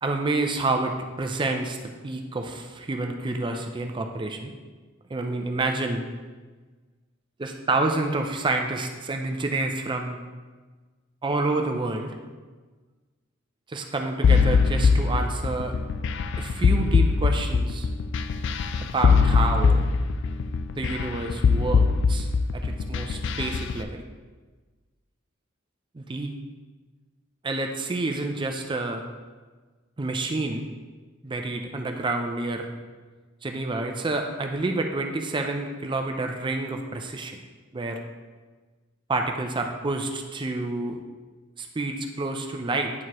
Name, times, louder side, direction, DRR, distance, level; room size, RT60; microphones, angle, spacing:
voice 1, 0.0-1.8 2.0-4.5 5.1-6.1 7.4-10.2 11.2-12.1 13.7-15.7 16.4-17.9 18.8-19.8 20.8-24.0 25.9-26.3 27.4-29.0 30.0-30.7 31.2-32.7 33.4-37.4 37.7-38.0 39.1-41.0 41.6-42.9, right 2 dB, 25° right, 4 dB, 0.4 m, -28 dB
sound 1, 14.2-23.8, left 5 dB, 60° left, 0.4 m, -21 dB
9.4 x 4.7 x 3.0 m, 1.3 s
head